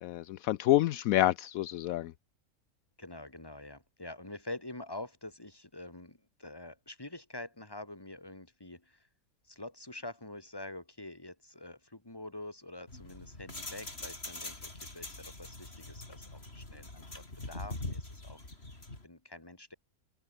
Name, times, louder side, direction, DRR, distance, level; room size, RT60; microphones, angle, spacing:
voice 1, 0.0-2.1, left 14 dB, 75° left, 1.0 m, -28 dB
voice 2, 3.0-9.1 9.4-18.4 19.0-19.8, left 2 dB, 15° left, 2.7 m, -46 dB
sound 1, 12.9-19.0, left 2 dB, 45° left, 4.8 m, -43 dB
omnidirectional pair, 1.5 m